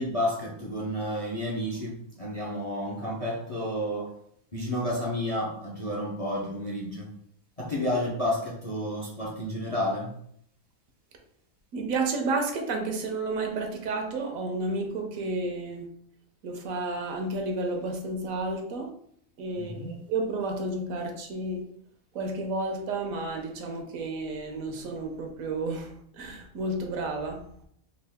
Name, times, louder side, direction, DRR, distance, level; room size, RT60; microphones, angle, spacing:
voice 1, 0.0-4.1 4.5-7.1 7.6-10.1 19.6-20.1, left 1 dB, 40° left, -4 dB, 0.5 m, -31 dB
voice 2, 11.7-15.9 16.4-18.9 19.4-21.6 22.1-27.4, right 2 dB, 75° right, 3 dB, 1.1 m, -31 dB
3.8 x 2.4 x 3.4 m, 0.67 s
omnidirectional pair, 1.4 m